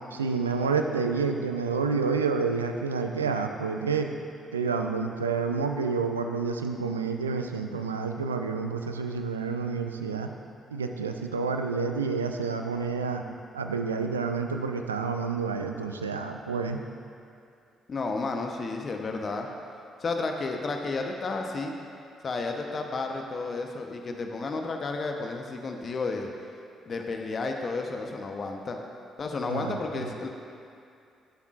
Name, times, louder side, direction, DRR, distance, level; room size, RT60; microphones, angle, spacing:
voice 1, 0.1-4.1 4.5-10.3 10.7-13.2 13.5-16.8 29.5-30.1, right 5 dB, 90° right, 5 dB, 0.4 m, -29 dB
voice 2, 17.9-19.5 20.0-21.7 22.2-26.3 26.9-28.8 29.2-30.3, left 3 dB, 45° left, 3 dB, 0.9 m, -32 dB
14.0 x 7.2 x 2.5 m, 2.5 s
hypercardioid pair, 45°, 0 cm